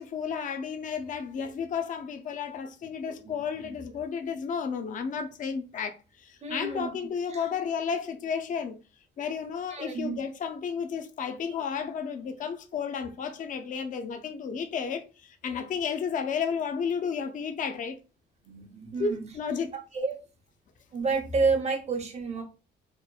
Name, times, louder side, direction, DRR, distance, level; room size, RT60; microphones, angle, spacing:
voice 1, 0.0-8.8 9.2-17.9 19.0-19.7, left 6 dB, 40° left, 0.4 m, -32 dB
voice 2, 6.4-6.9 7.3-7.5 9.7-10.2 18.4-19.3 19.9-20.2 20.9-22.4, right 4 dB, 35° right, 0.8 m, -30 dB
2.9 x 2.1 x 2.3 m
cardioid pair, 90°, 20 cm